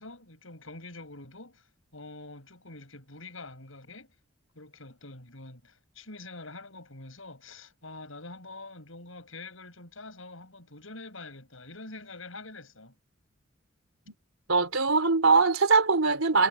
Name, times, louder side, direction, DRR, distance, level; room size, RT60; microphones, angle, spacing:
voice 1, 0.0-1.7 1.9-4.1 4.5-12.9, left 2 dB, 75° left, 6.5 m, -45 dB
voice 2, 14.5-16.5, right 4 dB, 85° right, 3.7 m, -22 dB
head